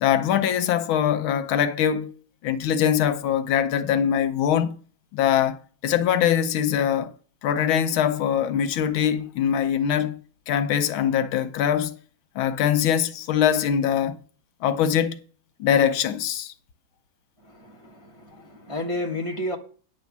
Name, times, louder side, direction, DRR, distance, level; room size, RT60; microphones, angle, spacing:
voice 1, 0.0-2.1 2.4-4.8 5.1-7.1 7.4-10.2 10.5-12.0 12.3-14.2 14.6-15.2 15.6-16.5, left 9 dB, 80° left, 1.6 m, -22 dB
voice 2, 17.4-19.6, left 1 dB, 20° right, 0.9 m, -31 dB
9.6 x 5.1 x 7.2 m
omnidirectional pair, 2.2 m